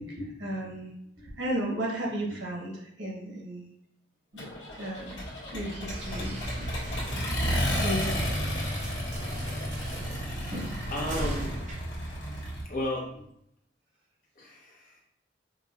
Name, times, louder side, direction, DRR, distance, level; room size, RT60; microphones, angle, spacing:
voice 1, 0.0-3.7 4.3-4.5 4.8-5.2 5.5-6.7 7.8-8.3 10.5-10.9, right 1 dB, 90° right, -3 dB, 1.1 m, -34 dB
Accelerating revving vroom, 4.4-12.6, equal, 80° left, 1.2 m, -33 dB
sound 1, 5.9-12.8, equal, 40° right, 0.8 m, -38 dB
voice 2, 10.2-11.6 12.6-13.1 14.4-15.0, left 1 dB, 50° left, -3 dB, 0.9 m, -35 dB
4.8 x 2.1 x 2.5 m, 0.76 s
head